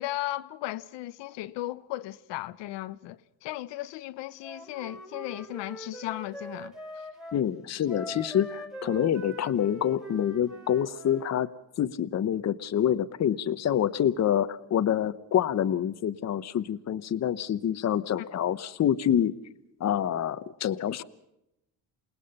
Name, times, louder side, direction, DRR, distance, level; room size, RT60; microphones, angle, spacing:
voice 1, 0.0-7.1 18.2-18.3 20.9-21.0, left 16 dB, 90° left, 1.0 m, -36 dB
Wind instrument woodwind instrument, 4.4-7.4 7.9-11.3, right 1 dB, ahead, 3.0 m, -43 dB
voice 2, 7.3-11.5 11.8-19.3 19.8-21.0, left 10 dB, 40° left, 1.0 m, -27 dB
28.0 x 19.5 x 5.5 m
cardioid pair, 135°, 42 cm